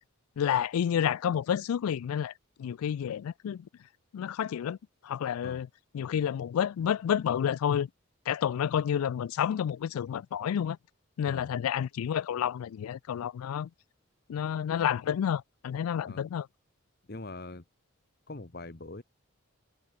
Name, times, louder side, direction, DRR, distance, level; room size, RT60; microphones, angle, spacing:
voice 1, 0.4-2.3 2.6-3.6 4.1-4.8 5.0-5.7 5.9-7.9 8.3-10.8 11.2-13.7 14.3-16.5, left 9 dB, 90° left, 0.3 m, -29 dB
voice 2, 17.1-17.6 18.3-19.0, left 2 dB, 45° left, 1.2 m, -42 dB
head